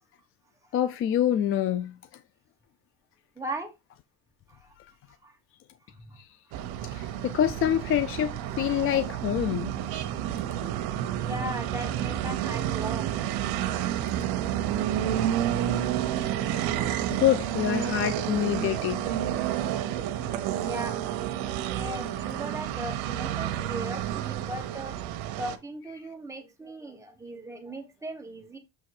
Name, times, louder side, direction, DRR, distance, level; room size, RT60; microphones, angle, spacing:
voice 1, 0.7-2.0 4.8-4.9 6.2-6.3 6.9-9.7 16.5-16.8 17.1-19.2, left 10 dB, 35° left, 0.4 m, -26 dB
voice 2, 3.4-3.7 4.5-4.6 5.2-5.3 5.9-6.2 11.2-13.1 16.8-16.9 19.7-20.1 20.6-25.0 25.4-28.6, right 1 dB, 10° right, 1.3 m, -38 dB
sound 1, 6.5-25.6, right 11 dB, 80° right, 1.0 m, -30 dB
7.7 x 3.1 x 4.8 m
cardioid pair, 140°, 37 cm